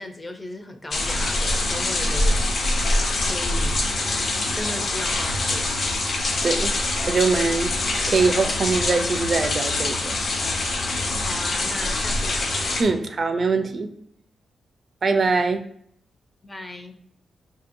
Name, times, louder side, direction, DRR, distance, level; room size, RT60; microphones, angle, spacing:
voice 1, 0.0-3.8 4.3-6.0 11.2-12.6 16.4-16.9, left 1 dB, 20° left, 6 dB, 0.5 m, -36 dB
sound 1, 0.9-12.8, left 2 dB, 60° left, 0.8 m, -24 dB
voice 2, 6.4-6.7 7.1-7.7 8.1-10.2 12.8-13.9 15.0-15.6, right 4 dB, 45° right, 7 dB, 0.4 m, -22 dB
5.6 x 2.8 x 2.6 m, 0.67 s
cardioid pair, 100°, 0 cm